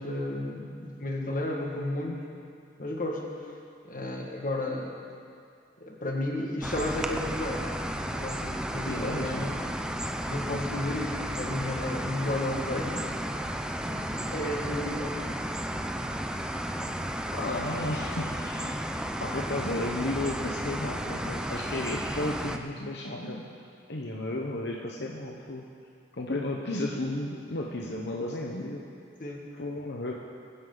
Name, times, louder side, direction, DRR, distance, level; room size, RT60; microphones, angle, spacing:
voice 1, 0.0-2.2 2.8-3.5 3.8-5.0 5.8-9.6 10.2-13.1 13.8-15.3 29.2-29.5, left 1 dB, 50° left, -1 dB, 1.9 m, -33 dB
sound 1, 6.6-22.6, equal, 5° right, 0.5 m, -33 dB
voice 2, 8.9-9.4 17.3-18.8 19.2-23.5 23.9-25.7 26.1-28.8 29.5-30.1, left 1 dB, 75° left, -1 dB, 1.1 m, -33 dB
21.5 x 10.0 x 4.0 m, 2.3 s
head